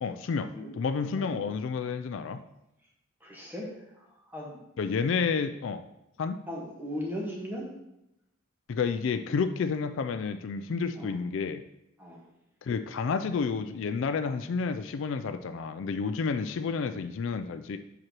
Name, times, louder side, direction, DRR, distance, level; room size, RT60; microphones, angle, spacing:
voice 1, 0.0-2.4 4.8-5.8 6.2-6.4 8.7-11.6 12.6-17.8, left 5 dB, 65° left, 9 dB, 0.3 m, -30 dB
voice 2, 3.2-3.7 4.3-4.6 6.5-7.7 11.0-11.1 12.0-12.2, equal, 10° right, -2 dB, 1.3 m, -37 dB
7.8 x 6.0 x 2.9 m, 0.87 s
head